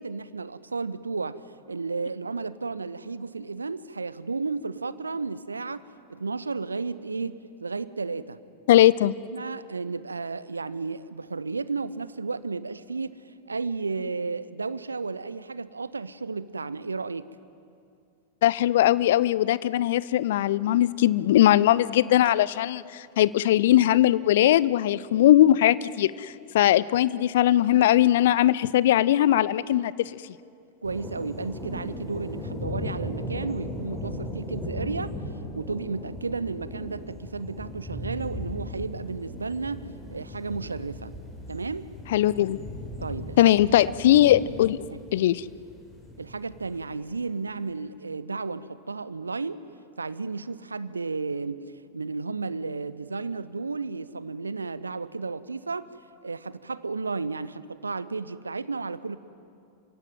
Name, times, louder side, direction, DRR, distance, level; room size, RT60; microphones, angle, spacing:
voice 1, 0.0-1.4 1.7-5.8 6.1-8.4 9.3-17.3 30.8-35.1 35.5-41.1 41.5-41.9 43.0-43.6 44.0-44.2 44.9-45.0 46.2-49.6 50.0-55.9 56.2-59.2, right 4 dB, 75° right, 17 dB, 0.7 m, -33 dB
voice 2, 8.7-9.1 18.4-30.2 42.1-42.6 43.4-44.8 45.1-45.4, left 13 dB, 55° left, 20 dB, 0.6 m, -20 dB
sound 1, 30.8-46.9, left 1 dB, 10° left, 6.0 m, -37 dB
28.5 x 16.5 x 9.3 m, 2.5 s
figure-of-eight pair, 90°, 0 cm